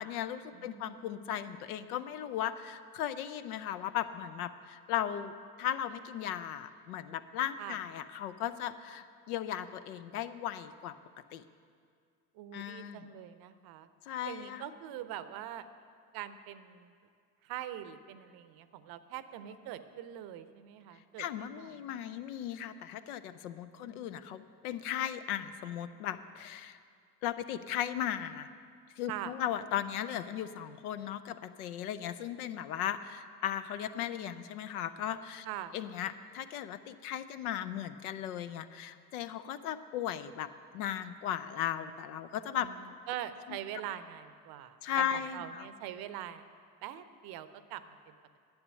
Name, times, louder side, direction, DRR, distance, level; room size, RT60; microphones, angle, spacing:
voice 1, 0.0-5.3 5.6-10.9 11.3-11.4 12.5-13.1 14.1-14.6 21.2-26.8 27.2-28.5 29.0-35.5 35.7-42.7 43.5-43.6 44.8-45.7, left 10 dB, 70° left, 12 dB, 0.6 m, -37 dB
voice 2, 0.5-1.6 7.6-7.8 12.3-13.9 14.2-15.7 16.1-16.9 17.4-22.2 23.8-24.4 29.1-29.4 35.4-35.8 42.6-42.8 43.1-45.0 45.3-46.5 46.8-48.2, right 11 dB, 50° right, 12 dB, 0.7 m, -43 dB
10.5 x 8.5 x 6.4 m, 2.2 s
figure-of-eight pair, 60°, 46 cm